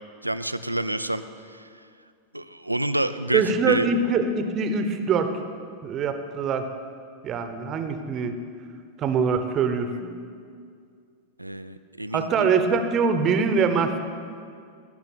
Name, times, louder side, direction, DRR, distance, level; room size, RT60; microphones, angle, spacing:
voice 1, 0.2-1.2 1.5-1.7 2.3-3.9 11.4-12.5, right 1 dB, 85° right, 11 dB, 0.5 m, -28 dB
voice 2, 3.3-5.3 5.8-6.7 7.2-8.4 9.0-10.1 12.1-14.0, right 5 dB, 30° right, 8 dB, 1.1 m, -23 dB
17.5 x 6.8 x 8.9 m, 2.2 s
figure-of-eight pair, 90°, 0 cm